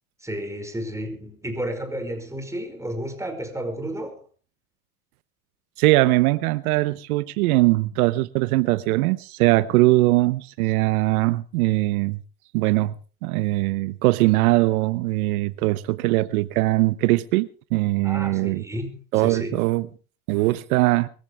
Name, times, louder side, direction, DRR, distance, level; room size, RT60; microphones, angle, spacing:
voice 1, 0.2-4.2 15.5-15.6 18.0-19.6, equal, 5° right, 5.4 m, -32 dB
voice 2, 5.8-12.2 12.5-12.9 13.2-18.6 19.1-19.8 20.3-21.1, right 19 dB, 80° right, 0.9 m, -21 dB
23.0 x 15.0 x 3.5 m
supercardioid pair, 100°, 43 cm